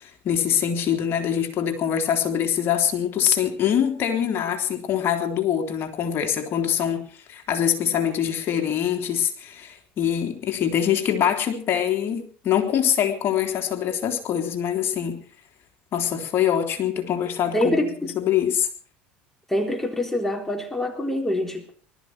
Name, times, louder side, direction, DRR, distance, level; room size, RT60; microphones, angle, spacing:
voice 1, 0.0-15.2 15.9-18.7, left 9 dB, 50° left, 4 dB, 3.4 m, -24 dB
voice 2, 17.5-18.1 19.5-21.6, left 1 dB, 5° left, 2 dB, 4.1 m, -25 dB
20.5 x 13.5 x 4.7 m, 0.41 s
supercardioid pair, 90°, 5 cm